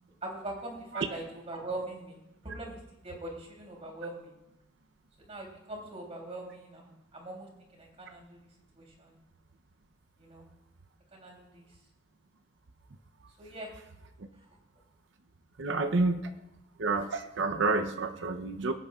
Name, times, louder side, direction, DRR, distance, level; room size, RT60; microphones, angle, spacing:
voice 1, 0.2-2.8 3.0-4.3 5.3-8.4 8.7-9.2 10.2-10.5 11.1-11.7 13.4-13.7, right 2 dB, 35° right, -1 dB, 3.2 m, -42 dB
voice 2, 15.6-16.3 16.8-18.7, right 3 dB, 70° right, 7 dB, 0.7 m, -29 dB
22.5 x 9.0 x 2.4 m, 0.88 s
head